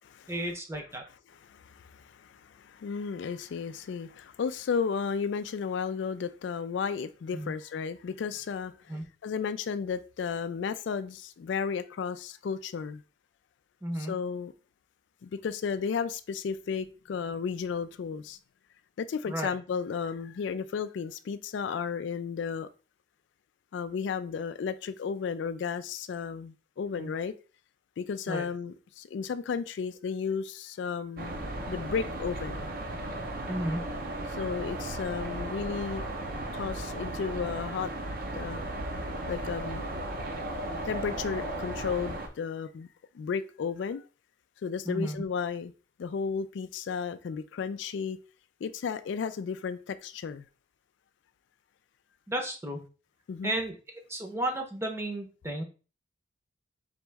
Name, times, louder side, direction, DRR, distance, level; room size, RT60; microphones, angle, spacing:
voice 1, 0.3-1.0 7.3-7.5 8.9-9.0 13.8-14.1 19.3-19.5 27.0-27.1 28.3-28.5 33.5-33.8 44.9-45.2 52.3-52.8 53.4-53.8 54.1-55.6, right 1 dB, 15° right, 0.8 m, -33 dB
voice 2, 1.3-13.0 13.9-14.5 15.2-18.4 19.0-22.7 23.7-27.3 28.0-31.3 31.7-32.6 34.3-36.0 36.5-37.9 38.3-38.7 39.3-39.8 40.8-42.9 43.1-44.0 44.6-45.7 46.0-48.2 48.6-50.5 53.3-53.6, left 6 dB, 70° left, 0.3 m, -33 dB
sound 1, 31.2-42.3, right 1 dB, 50° right, 0.7 m, -35 dB
4.3 x 3.0 x 3.4 m
head